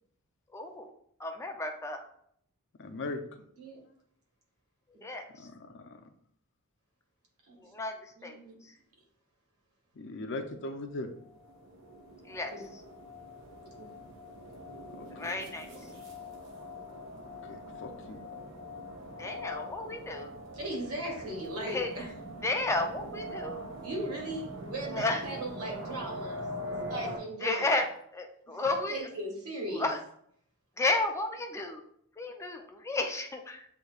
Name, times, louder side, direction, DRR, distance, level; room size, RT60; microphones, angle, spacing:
voice 1, 0.5-0.9 1.2-2.0 5.0-5.2 7.7-7.9 8.2-8.4 12.3-12.5 15.1-15.7 19.2-20.3 21.7-21.9 22.4-23.6 24.9-25.2 27.4-27.9 28.1-29.0 29.8-30.0 30.8-31.8 32.2-33.7, left 2 dB, 15° left, 4 dB, 0.4 m, -32 dB
voice 2, 2.7-3.4 5.4-6.1 9.9-11.1 14.9-15.3 17.1-18.2 25.0-25.1 28.6-28.7, left 2 dB, 55° left, 6 dB, 0.6 m, -40 dB
voice 3, 8.1-8.6 12.5-12.6 13.8-13.9 15.3-16.0 20.5-22.1 23.8-27.7 28.5-28.6 28.9-29.9, right 1 dB, 80° right, -2 dB, 1.8 m, -38 dB
sound 1, 11.0-27.2, equal, 60° right, 1.1 m, -43 dB
7.9 x 2.8 x 2.3 m, 0.68 s
head